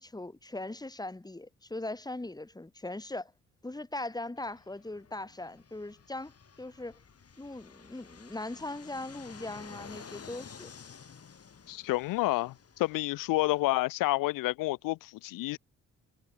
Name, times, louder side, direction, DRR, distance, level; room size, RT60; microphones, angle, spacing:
voice 1, 0.0-3.3 3.6-7.0 7.4-10.7, left 2 dB, 10° left, 1.8 m, -40 dB
Fixed-wing aircraft airplane, 4.4-13.6, left 6 dB, 50° left, 3.0 m, -52 dB
voice 2, 11.7-15.6, left 19 dB, 90° left, 0.8 m, -29 dB
supercardioid pair, 55°, 32 cm